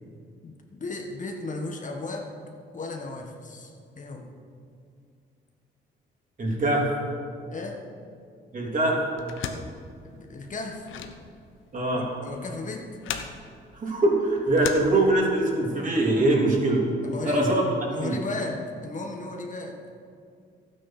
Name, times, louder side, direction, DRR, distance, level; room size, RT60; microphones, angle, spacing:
voice 1, 0.4-2.3 2.7-4.3 7.5-7.8 10.0-10.9 11.9-12.9 17.0-17.5 17.9-19.8, left 3 dB, 40° left, 2 dB, 1.5 m, -35 dB
voice 2, 6.4-6.9 8.5-9.0 11.7-12.0 13.7-16.8 17.2-17.6 18.0-18.1, right 2 dB, 40° right, -2 dB, 3.3 m, -22 dB
sound 1, 9.2-15.5, left 7 dB, 80° left, 1.0 m, -39 dB
12.5 x 9.2 x 6.0 m, 2.3 s
cardioid pair, 90°, 20 cm